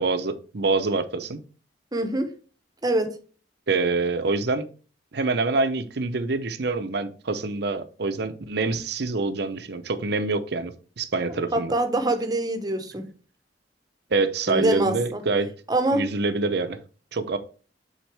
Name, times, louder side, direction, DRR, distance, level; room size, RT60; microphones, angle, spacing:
voice 1, 0.0-1.4 3.7-4.7 5.1-11.7 14.1-15.5 15.9-16.8 17.1-17.4, right 3 dB, 65° right, 0.7 m, -26 dB
voice 2, 1.9-2.3 2.8-3.1 11.5-13.1 14.5-15.2 15.7-16.0, right 1 dB, 20° right, 1.0 m, -24 dB
9.0 x 4.1 x 3.4 m
head